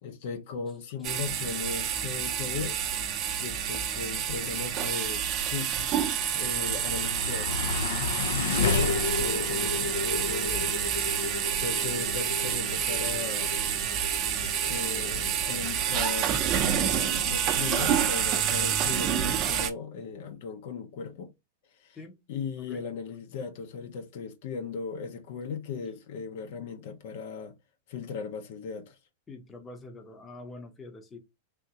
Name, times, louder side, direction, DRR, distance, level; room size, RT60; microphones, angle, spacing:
voice 1, 0.0-2.8 3.4-5.7 6.3-7.6 8.8-10.8 11.6-13.6 14.6-21.3 21.8-22.0 22.3-27.5 27.9-29.0, left 5 dB, 55° left, 0.7 m, -37 dB
sound 1, 1.0-19.7, right 9 dB, 30° right, 0.6 m, -28 dB
sound 2, 6.1-18.4, left 5 dB, 85° left, 0.4 m, -34 dB
voice 2, 29.3-31.2, left 2 dB, 15° left, 0.7 m, -45 dB
3.5 x 2.5 x 2.8 m
supercardioid pair, 155°, 0 cm